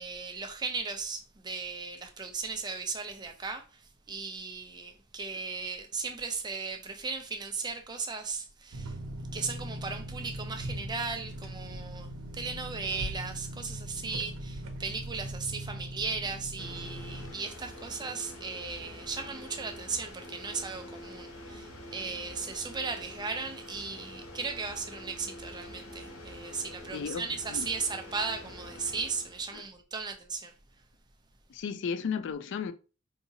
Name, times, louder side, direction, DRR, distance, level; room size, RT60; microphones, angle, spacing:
voice 1, 0.0-9.0 9.3-30.5, right 4 dB, 20° right, 0.5 m, -37 dB
sound 1, 8.7-17.3, right 1 dB, 80° right, 0.7 m, -40 dB
sound 2, 16.6-29.6, left 1 dB, 90° left, 1.6 m, -46 dB
voice 2, 26.9-27.7 29.5-29.6 31.5-32.7, left 6 dB, 60° left, 0.3 m, -34 dB
4.7 x 2.8 x 2.7 m
head